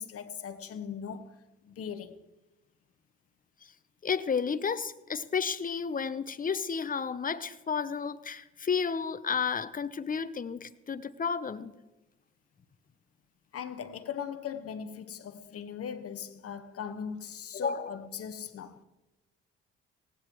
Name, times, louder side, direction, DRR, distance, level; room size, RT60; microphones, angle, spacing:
voice 1, 0.0-1.4 1.6-2.2 13.5-18.8, left 7 dB, 50° left, 1.1 m, -39 dB
voice 2, 4.0-11.7 17.5-17.9, left 6 dB, 30° left, 0.8 m, -32 dB
17.5 x 16.0 x 3.1 m
hypercardioid pair, 50°, 30 cm